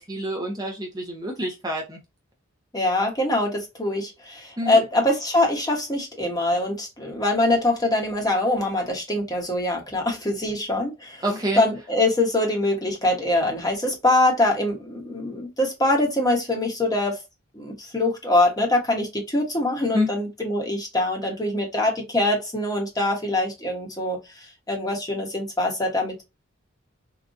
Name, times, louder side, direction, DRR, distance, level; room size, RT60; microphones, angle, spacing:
voice 1, 0.0-2.0 4.6-4.8 11.2-11.6 19.9-20.1, equal, 20° right, 0.7 m, -27 dB
voice 2, 2.7-11.2 11.5-17.2 17.5-26.2, left 1 dB, 20° left, 1.0 m, -23 dB
3.8 x 2.3 x 2.5 m
head